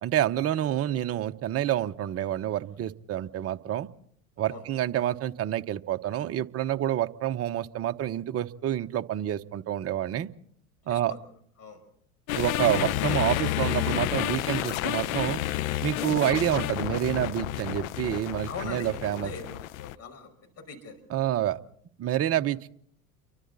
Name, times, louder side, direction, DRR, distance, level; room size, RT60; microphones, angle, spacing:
voice 1, 0.0-3.9 4.4-10.3 10.9-11.1 12.3-15.4 15.8-19.3 21.1-21.6 22.0-22.7, right 12 dB, 35° right, 9 dB, 1.0 m, -28 dB
sound 1, 12.3-20.0, left 15 dB, 70° left, 0.9 m, -30 dB
voice 2, 18.5-21.0, left 4 dB, 35° left, 6 dB, 5.6 m, -41 dB
30.0 x 24.0 x 4.1 m, 0.65 s
hypercardioid pair, 90°, 43 cm